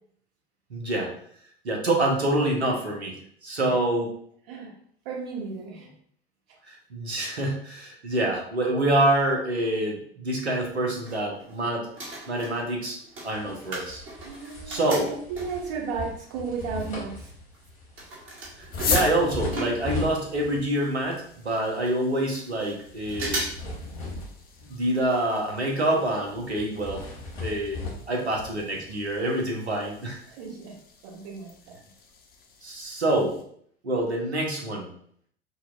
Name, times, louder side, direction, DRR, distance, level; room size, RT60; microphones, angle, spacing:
voice 1, 0.7-1.1 1.6-3.1 3.4-4.1 6.7-11.9 12.3-13.0 13.2-14.0 14.7-15.1 18.6-23.4 24.7-27.0 27.4-27.8 28.1-30.2 32.6-33.4 33.8-34.9, right 1 dB, 85° right, 0 dB, 0.8 m, -26 dB
voice 2, 5.0-5.9 14.2-17.3 28.1-28.2 30.3-30.7 31.0-31.8, right 5 dB, 60° right, -1 dB, 1.2 m, -34 dB
sound 1, 10.9-11.6 11.9-15.8 16.4-16.5 16.6-20.3 20.5-20.6 20.8-20.9 21.5-21.6 21.9-22.7 23.1-23.7 24.0-24.1 25.1-25.4 25.7-25.8 26.3-26.4 26.7-26.8, right 2 dB, 40° right, 1.3 m, -37 dB
sound 2, 13.3-20.7 21.0-21.3 22.8-25.1 25.4-25.7 25.9-26.0 26.5-29.2, left 2 dB, 80° left, 1.3 m, -37 dB
sound 3, 18.7-33.4, left 6 dB, 30° left, 0.6 m, -40 dB
5.4 x 2.1 x 2.5 m, 0.63 s
figure-of-eight pair, 75°, 32 cm